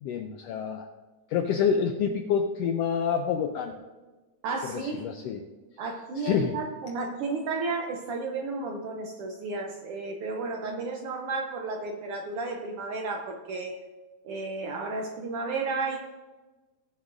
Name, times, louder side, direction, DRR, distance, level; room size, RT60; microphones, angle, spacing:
voice 1, 0.0-0.9 1.3-3.7 4.7-5.4 6.2-6.5, left 7 dB, 90° left, 5 dB, 1.4 m, -27 dB
voice 2, 4.4-5.1 5.8-13.8 14.2-16.0, right 3 dB, 80° right, 3 dB, 1.3 m, -33 dB
18.0 x 7.2 x 2.5 m, 1.2 s
omnidirectional pair, 3.4 m